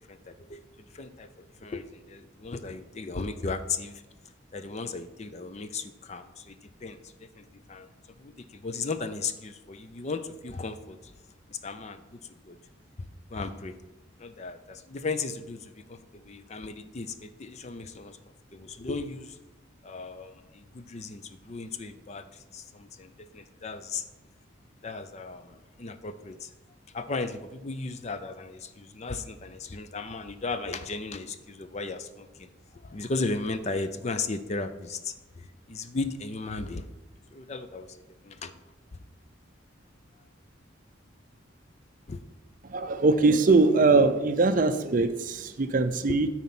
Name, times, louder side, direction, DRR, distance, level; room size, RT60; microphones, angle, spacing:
voice 1, 0.1-4.0 4.5-7.9 8.2-11.1 11.5-12.2 12.5-12.6 13.3-13.7 14.2-18.2 18.5-19.4 19.8-24.1 24.8-26.5 26.9-32.5 32.8-36.8 37.3-37.9 38.2-38.5 42.1-42.2 46.1-46.2, left 3 dB, 35° left, 10 dB, 0.4 m, -36 dB
voice 2, 42.6-46.3, right 3 dB, 40° right, 10 dB, 0.5 m, -22 dB
9.3 x 4.2 x 6.0 m, 1.1 s
head